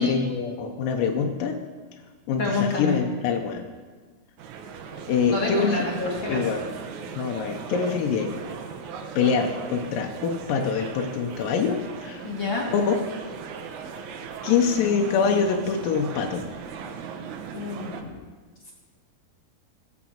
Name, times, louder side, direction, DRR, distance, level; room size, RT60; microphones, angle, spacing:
voice 1, 0.0-1.6 2.3-3.7 5.1-6.7 7.1-8.3 9.2-12.3 12.7-13.0 14.4-16.4 18.0-18.2, left 6 dB, 75° left, 3 dB, 2.1 m, -25 dB
voice 2, 2.4-3.0 5.3-6.6 12.2-12.7 17.5-18.1, left 3 dB, 45° left, -2 dB, 1.6 m, -28 dB
sound 1, 4.4-18.0, right 6 dB, 90° right, 1.6 m, -38 dB
18.0 x 6.2 x 7.2 m, 1.4 s
omnidirectional pair, 4.8 m